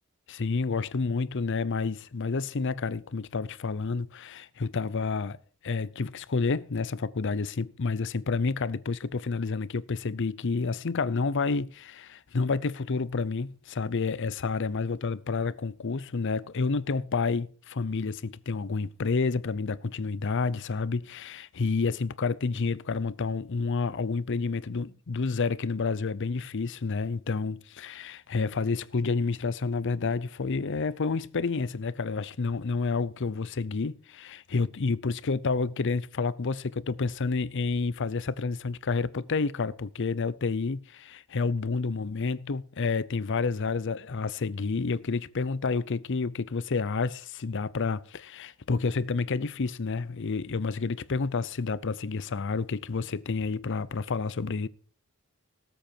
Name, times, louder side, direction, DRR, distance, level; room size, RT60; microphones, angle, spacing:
voice 1, 0.3-5.4 5.6-54.7, left 4 dB, 60° left, 0.6 m, -29 dB
18.0 x 7.9 x 4.5 m
head